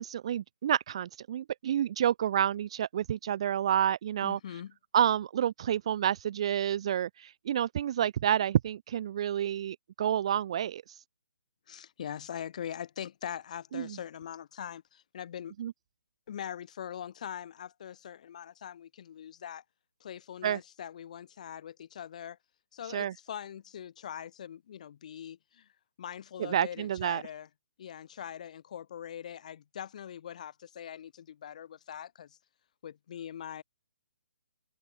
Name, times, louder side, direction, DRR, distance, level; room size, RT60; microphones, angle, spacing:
voice 1, 0.0-4.4 4.9-10.8 13.7-14.0 15.6-15.7 20.4-20.6 22.9-23.1 26.4-27.2, right 10 dB, 30° right, 0.3 m, -29 dB
voice 2, 4.2-4.7 11.7-15.5 16.3-19.6 20.0-22.4 22.7-25.7 26.0-27.5 27.8-32.4 32.8-33.6, left 9 dB, 40° left, 1.2 m, -42 dB
hypercardioid pair, 170°, 6 cm